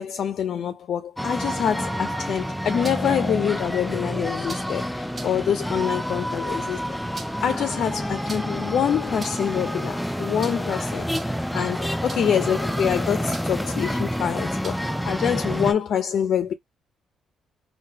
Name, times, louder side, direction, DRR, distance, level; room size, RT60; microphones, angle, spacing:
voice 1, 0.0-7.0 7.4-16.5, left 8 dB, 65° left, 0.4 m, -26 dB
sound 1, 1.2-15.7, equal, 5° left, 0.3 m, -28 dB
sound 2, 2.4-3.1 4.4-4.8 5.1-5.4 6.9-7.6 8.3-8.6 9.1-9.6 10.4-10.7 11.1-11.5 12.1-12.4 13.3-13.7 14.6-15.0, right 3 dB, 35° right, 0.7 m, -41 dB
3.8 x 2.2 x 2.7 m
cardioid pair, 90°, 0 cm